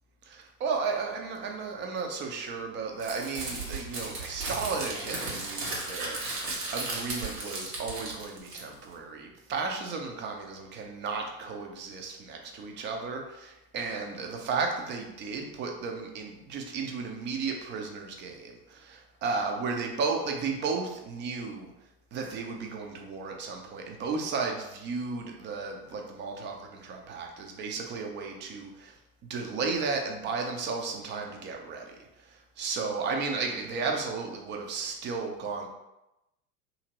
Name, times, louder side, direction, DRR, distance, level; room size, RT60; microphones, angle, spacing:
voice 1, 0.2-6.2 6.7-21.7 22.1-29.0 29.2-31.8 32.2-35.7, right 4 dB, 25° right, 2 dB, 0.5 m, -34 dB
Crumpling crinkling, 3.0-8.9, right 2 dB, 85° right, 0.9 m, -35 dB
2.8 x 2.6 x 2.8 m, 0.93 s
hypercardioid pair, 85°, 46 cm